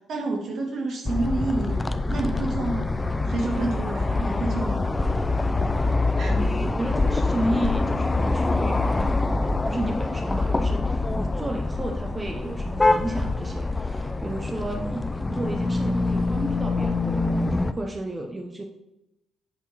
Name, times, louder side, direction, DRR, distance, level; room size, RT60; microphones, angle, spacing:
voice 1, 0.1-1.8 2.1-2.9 3.3-4.8 6.2-6.4, right 2 dB, 65° right, -1 dB, 2.2 m, -29 dB
sound 1, 1.1-17.7, left 3 dB, 20° left, 0.5 m, -25 dB
voice 2, 6.3-18.6, right 1 dB, 20° right, 2 dB, 0.7 m, -32 dB
8.6 x 3.8 x 4.1 m, 0.89 s
cardioid pair, 85°, 0 cm